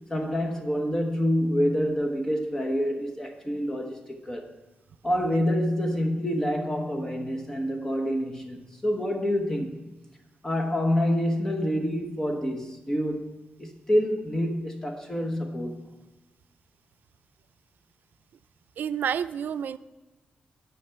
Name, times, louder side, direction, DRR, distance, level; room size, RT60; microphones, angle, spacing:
voice 1, 0.1-4.5 5.0-9.8 10.4-15.8, equal, 15° left, 4 dB, 0.9 m, -27 dB
voice 2, 18.8-19.8, right 8 dB, 80° right, 12 dB, 0.4 m, -29 dB
11.0 x 5.8 x 5.6 m, 1.1 s
wide cardioid pair, 120°, 3 cm